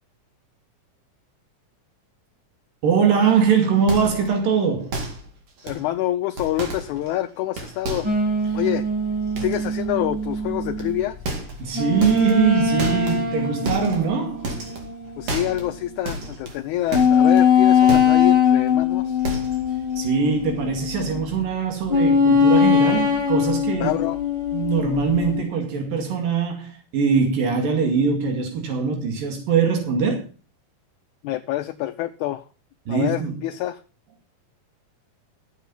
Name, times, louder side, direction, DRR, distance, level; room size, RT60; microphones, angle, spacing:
voice 1, 2.8-5.0 11.6-14.5 20.0-24.0 24.5-30.3 32.9-33.4, right 6 dB, 90° right, 4.0 m, -22 dB
sound 1, 3.9-4.4 4.9-5.3 5.6-5.9 6.4-7.3 7.6-8.3 9.4-9.7 10.8-10.9 11.3-11.7 12.0-12.5 12.8-13.3 13.7-14.1 14.4-14.9 15.3-15.8 16.1-17.5 17.9-18.3 18.7-18.8 19.2-19.7 20.0-20.3 20.6-20.7, right 2 dB, 50° right, 3.2 m, -31 dB
voice 2, 5.6-8.1 8.5-8.8 9.4-11.2 15.2-19.2 23.8-24.2 31.2-32.5 32.9-33.8, left 14 dB, 75° left, 2.0 m, -27 dB
sound 2, 8.0-15.8 16.2-16.3 16.9-21.3 21.9-25.4, left 6 dB, 10° right, 1.9 m, -21 dB
13.0 x 8.2 x 5.6 m
omnidirectional pair, 3.8 m